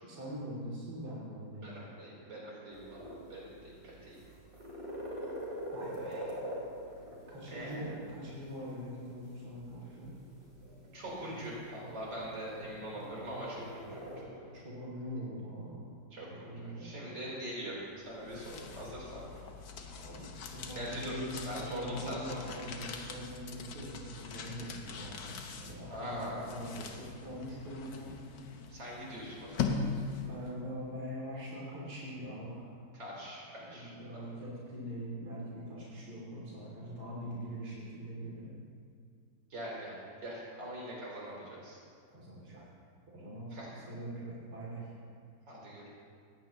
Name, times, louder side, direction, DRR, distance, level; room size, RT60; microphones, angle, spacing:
voice 1, 0.1-1.7 5.7-6.4 7.3-10.2 14.5-15.9 16.5-17.2 19.9-28.1 29.9-32.7 33.7-38.5 42.1-42.6 43.1-44.9, equal, 60° right, -6 dB, 3.4 m, -43 dB
voice 2, 1.6-4.2 7.5-8.0 10.9-14.0 16.1-17.8 18.1-19.4 20.7-22.6 25.9-26.7 28.7-29.7 32.9-34.2 39.5-41.8 43.5-43.7 45.5-45.9, equal, 90° right, -5 dB, 4.7 m, -43 dB
sound 1, 2.7-14.2, equal, 35° right, 3.8 m, -45 dB
sound 2, 17.9-30.5, left 5 dB, 75° left, 1.7 m, -41 dB
19.0 x 15.5 x 3.0 m, 2.2 s
omnidirectional pair, 1.9 m